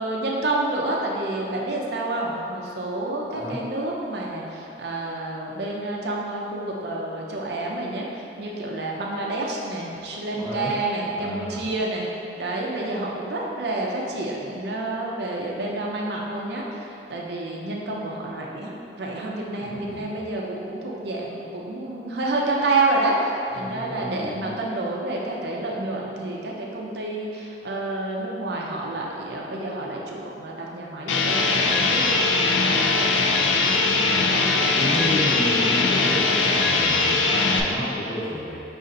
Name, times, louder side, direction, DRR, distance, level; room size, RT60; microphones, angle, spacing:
voice 1, 0.0-12.1 12.4-18.7 19.0-23.2 23.5-34.7 35.0-35.7 36.0-36.2, right 2 dB, 60° right, -2 dB, 0.5 m, -29 dB
voice 2, 10.3-11.6 19.7-20.2 23.5-24.5 33.9-34.4 34.7-38.6, left 1 dB, ahead, -10 dB, 0.9 m, -31 dB
sound 1, 31.1-37.6, left 3 dB, 85° left, 0.4 m, -21 dB
5.3 x 2.4 x 3.7 m, 2.9 s
head